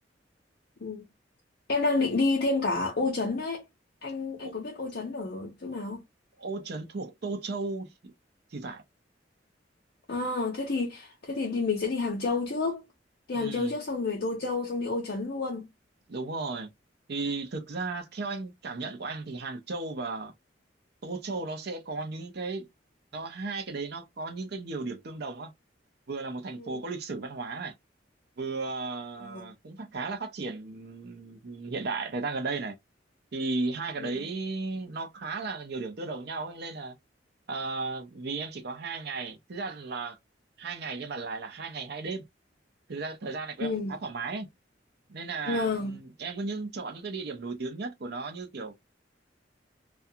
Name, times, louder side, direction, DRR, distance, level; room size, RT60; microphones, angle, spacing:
voice 1, 1.7-3.6 4.0-6.0 10.1-12.8 13.3-15.7 26.6-26.8 29.2-29.5 34.0-34.2 43.6-44.0 45.4-46.0, left 3 dB, 60° left, 0.7 m, -30 dB
voice 2, 6.4-8.1 8.5-8.8 13.3-13.8 16.1-16.7 17.1-20.3 21.0-22.7 23.1-25.5 26.1-27.7 28.4-32.8 33.3-37.0 37.5-40.2 40.6-42.2 42.9-44.5 45.1-48.7, right 3 dB, 60° right, 0.6 m, -35 dB
2.4 x 2.3 x 2.7 m
head